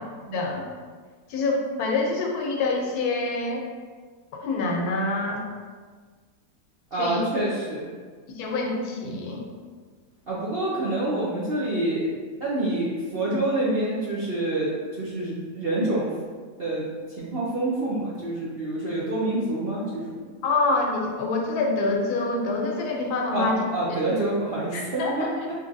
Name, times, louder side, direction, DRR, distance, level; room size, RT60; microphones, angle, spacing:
voice 1, 0.3-0.7 1.3-3.7 4.3-5.4 7.0-7.3 8.4-9.5 20.4-24.0 24.7-25.3, left 3 dB, 80° left, 1 dB, 1.1 m, -26 dB
voice 2, 6.9-7.9 10.3-12.1 12.4-16.1 16.6-16.9 17.2-20.2 23.3-25.5, right 2 dB, 60° right, -7 dB, 0.6 m, -27 dB
4.5 x 2.9 x 2.6 m, 1.5 s
omnidirectional pair, 1.7 m